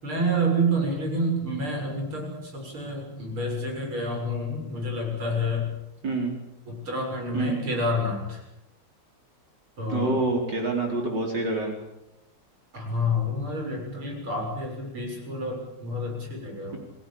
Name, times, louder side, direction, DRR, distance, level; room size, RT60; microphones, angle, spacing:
voice 1, 0.0-5.7 6.7-8.4 9.8-10.2 12.7-16.8, equal, 80° right, 1 dB, 7.9 m, -28 dB
voice 2, 6.0-6.3 7.3-7.6 9.9-11.7, right 3 dB, 55° right, 2 dB, 5.0 m, -26 dB
27.5 x 18.0 x 8.7 m, 0.87 s
omnidirectional pair, 2.3 m